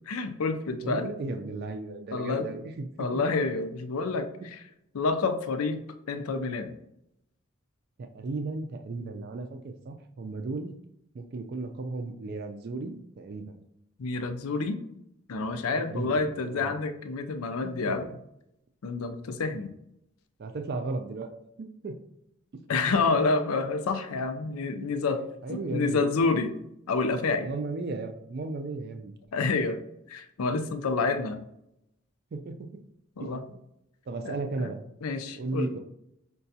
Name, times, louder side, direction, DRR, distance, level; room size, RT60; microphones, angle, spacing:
voice 1, 0.1-1.1 2.1-2.5 3.0-4.6 4.9-5.8 6.1-6.7 14.0-14.8 15.3-18.0 18.8-19.7 22.7-25.2 25.5-26.5 26.9-27.5 29.3-29.8 30.1-31.4 33.2-33.4 34.2-34.7 35.0-35.7, left 3 dB, 85° left, 8 dB, 0.5 m, -28 dB
voice 2, 0.8-3.2 8.0-10.7 11.1-13.6 15.9-16.8 17.6-17.8 18.0-18.2 20.4-21.3 21.6-22.0 25.4-26.1 27.4-29.1 30.6-30.7 32.3-32.8 33.2-33.6 34.1-34.8 35.4-35.8, right 3 dB, 50° right, 6 dB, 0.4 m, -35 dB
5.7 x 2.3 x 2.7 m, 0.79 s
head